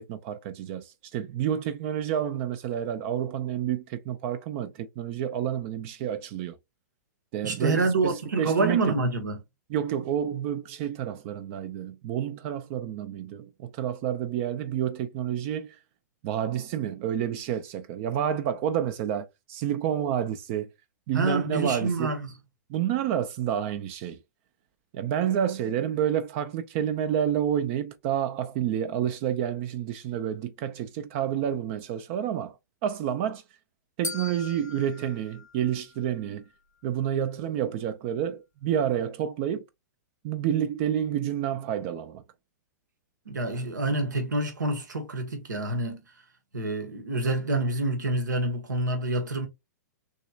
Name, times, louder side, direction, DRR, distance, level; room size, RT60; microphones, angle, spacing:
voice 1, 0.0-6.5 7.3-9.0 9.7-15.8 16.2-20.7 21.1-22.1 22.7-24.2 24.9-32.6 32.8-33.4 34.0-36.4 36.8-39.6 40.2-42.2, right 10 dB, 45° right, 0.6 m, -29 dB
voice 2, 7.4-9.4 21.1-22.3 43.3-46.0 46.5-49.5, right 2 dB, 85° right, 1.3 m, -27 dB
sound 1, 34.0-36.3, left 3 dB, 80° left, 1.2 m, -40 dB
6.4 x 3.0 x 2.3 m
hypercardioid pair, 115°, 10 cm